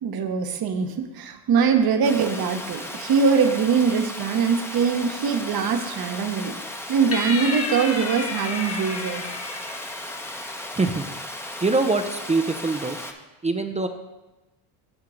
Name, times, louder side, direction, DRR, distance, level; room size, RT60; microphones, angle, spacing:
voice 1, 0.0-6.6 6.9-9.2, right 6 dB, 50° right, 7 dB, 1.0 m, -22 dB
Water, 2.0-13.1, left 1 dB, 5° left, 0.8 m, -36 dB
sound 1, 7.1-10.7, left 3 dB, 30° left, 1.2 m, -32 dB
voice 2, 11.6-13.0 13.4-13.9, right 3 dB, 15° right, 7 dB, 0.4 m, -23 dB
8.8 x 3.7 x 6.3 m, 1.1 s
supercardioid pair, 80°, 48 cm